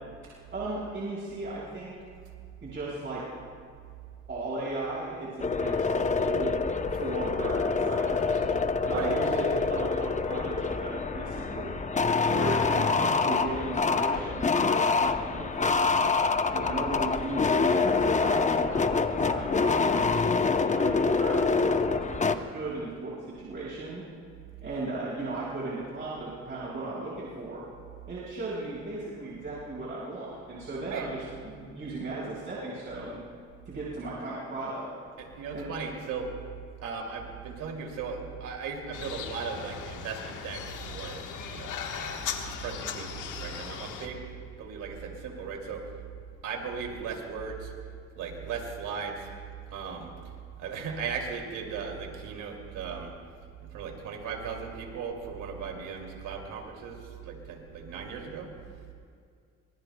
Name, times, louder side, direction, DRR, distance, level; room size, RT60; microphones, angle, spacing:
voice 1, 0.5-1.9 2.6-3.2 4.3-6.6 7.0-8.4 8.8-11.8 12.3-16.1 16.5-20.0 20.6-24.0 24.6-27.6 28.1-33.2 33.6-34.9 35.5-35.7, right 2 dB, 40° right, -7 dB, 4.8 m, -36 dB
sound 1, 5.4-22.4, left 4 dB, 25° left, 0.7 m, -26 dB
voice 2, 35.2-36.3 36.8-41.2 41.5-41.7 42.0-42.2 42.6-44.2 44.6-45.8 46.4-47.7 48.2-49.2 49.7-50.1 50.6-53.1 53.7-57.0 57.2-58.5, right 6 dB, 90° right, 1 dB, 2.7 m, -37 dB
sound 2, 38.9-44.1, left 7 dB, 85° left, 1.4 m, -38 dB
24.5 x 22.0 x 2.3 m, 2.2 s
cardioid pair, 90°, 30 cm